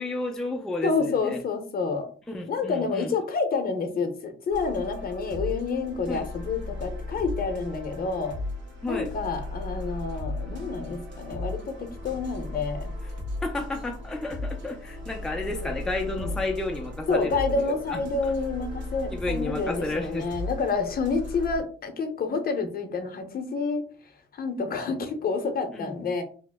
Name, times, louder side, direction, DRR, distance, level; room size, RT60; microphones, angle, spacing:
voice 1, 0.0-1.4 2.3-3.1 6.1-6.2 8.8-9.1 13.4-18.3 19.1-20.3 25.7-25.9, left 2 dB, 5° left, 3 dB, 0.4 m, -32 dB
voice 2, 0.8-2.1 2.5-8.4 8.9-12.9 15.4-15.7 16.1-16.3 17.1-23.8 24.3-26.2, left 4 dB, 50° left, 7 dB, 0.7 m, -28 dB
sound 1, 4.5-21.6, left 2 dB, 65° right, 1.1 m, -36 dB
2.9 x 2.0 x 3.4 m, 0.42 s
cardioid pair, 90°, 20 cm